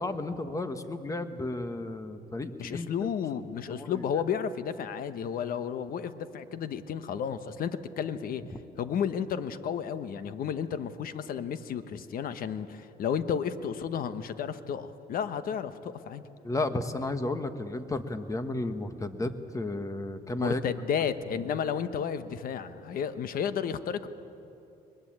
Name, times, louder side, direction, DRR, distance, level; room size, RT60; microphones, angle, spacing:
voice 1, 0.0-2.9 3.7-4.1 16.4-20.6, left 2 dB, 20° left, 9 dB, 1.4 m, -33 dB
voice 2, 2.6-8.4 8.8-16.2 20.4-24.1, left 7 dB, 60° left, 11 dB, 1.2 m, -32 dB
22.5 x 21.0 x 8.7 m, 2.8 s
cardioid pair, 110°, 17 cm